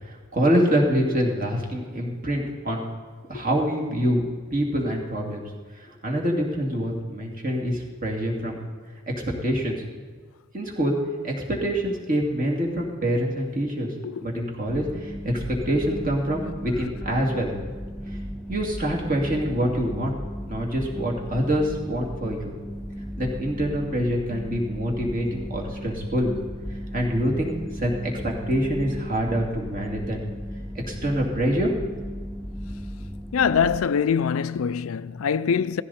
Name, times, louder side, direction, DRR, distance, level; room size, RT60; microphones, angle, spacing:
voice 1, 0.0-2.8 3.3-4.2 4.5-5.4 5.8-8.6 9.4-9.8 10.5-10.9 11.2-13.9 14.2-17.5 18.1-18.2 18.5-20.2 20.5-22.4 23.2-26.3 26.9-30.2 30.9-31.7, equal, 40° right, 2.6 m, -25 dB
sound 1, 14.7-33.8, equal, ahead, 1.7 m, -36 dB
voice 2, 33.3-35.8, left 6 dB, 75° left, 0.4 m, -23 dB
16.0 x 15.5 x 4.3 m
head